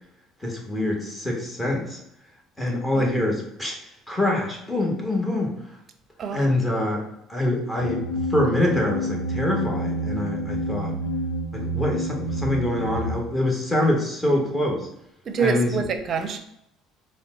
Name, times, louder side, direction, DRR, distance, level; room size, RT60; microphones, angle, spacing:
voice 1, 0.4-2.0 2.6-5.6 6.3-7.0 7.3-11.0 11.5-14.9 15.4-15.7, left 1 dB, 15° left, -1 dB, 1.4 m, -25 dB
sound 1, 7.8-13.2, right 1 dB, 90° left, 0.4 m, -28 dB
voice 2, 15.3-16.4, right 5 dB, 50° right, 7 dB, 0.6 m, -26 dB
4.0 x 2.2 x 3.7 m, 0.79 s
hypercardioid pair, 70°, 0 cm